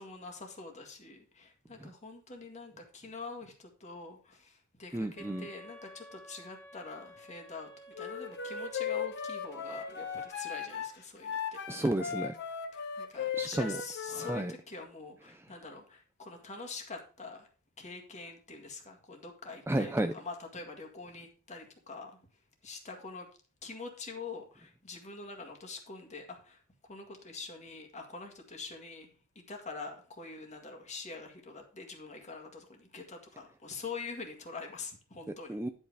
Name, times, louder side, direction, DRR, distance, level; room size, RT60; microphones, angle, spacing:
voice 1, 0.0-7.7 8.0-11.4 12.7-17.5 17.8-22.2 22.6-23.3 23.6-35.5, left 4 dB, 35° left, 3 dB, 1.9 m, -45 dB
voice 2, 4.9-5.5 11.7-12.3 13.4-13.8 14.2-14.5 19.7-20.1 35.5-35.7, right 1 dB, 10° right, 8 dB, 0.4 m, -32 dB
sound 1, 5.2-10.3, right 1 dB, 10° left, 2.6 m, -52 dB
Wind instrument woodwind instrument, 7.9-14.5, left 7 dB, 50° left, 1.3 m, -37 dB
10.5 x 5.4 x 4.8 m, 0.39 s
head